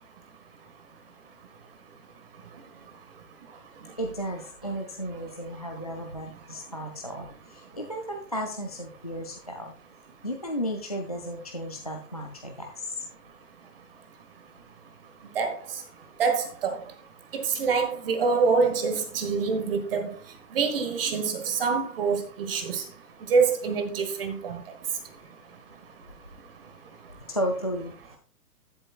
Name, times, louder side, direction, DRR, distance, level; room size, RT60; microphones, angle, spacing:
voice 1, 4.0-9.7 10.2-13.0 27.1-28.2, equal, 25° left, 0.4 m, -34 dB
voice 2, 16.2-16.8 17.3-20.1 20.5-22.8 23.3-24.6, right 5 dB, 35° right, 1.4 m, -25 dB
12.5 x 7.5 x 2.4 m
hypercardioid pair, 160°, 48 cm